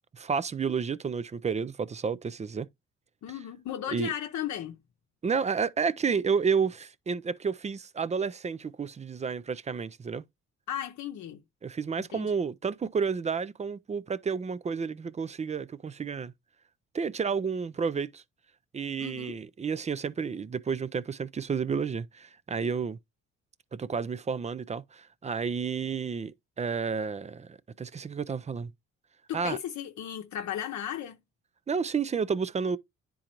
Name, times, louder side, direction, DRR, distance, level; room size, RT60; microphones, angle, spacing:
voice 1, 0.1-2.7 3.9-4.1 5.2-10.2 11.6-16.3 16.9-18.2 18.7-23.0 23.7-28.7 29.3-29.6 31.7-32.8, right 5 dB, 25° right, 0.4 m, -31 dB
voice 2, 3.2-4.8 10.7-11.4 12.0-12.3 19.0-19.4 29.3-31.2, left 10 dB, 70° left, 0.8 m, -35 dB
9.9 x 3.8 x 2.9 m
cardioid pair, 90°, 30 cm